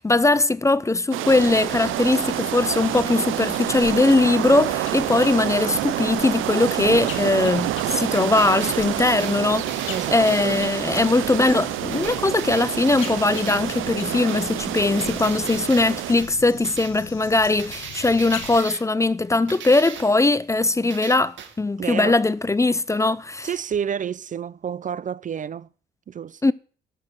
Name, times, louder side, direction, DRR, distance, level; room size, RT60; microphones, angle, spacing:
voice 1, 0.0-23.5 26.4-26.5, left 2 dB, 15° left, 0.5 m, -20 dB
sound 1, 1.1-16.1, right 15 dB, 85° right, 0.6 m, -28 dB
sound 2, 1.3-18.6, left 9 dB, 85° left, 1.7 m, -40 dB
sound 3, 8.1-10.7 11.0-11.2 11.4-11.7 11.9-13.6 14.3-14.5 14.8-15.9 16.2-16.4 16.6-16.9 17.6-18.8 19.5-20.2 20.9-21.6, right 8 dB, 70° right, 2.1 m, -39 dB
voice 2, 9.9-10.6 21.8-22.2 23.4-25.7 26.1-26.5, right 8 dB, 40° right, 0.5 m, -29 dB
12.5 x 6.5 x 7.4 m
cardioid pair, 90°, 20 cm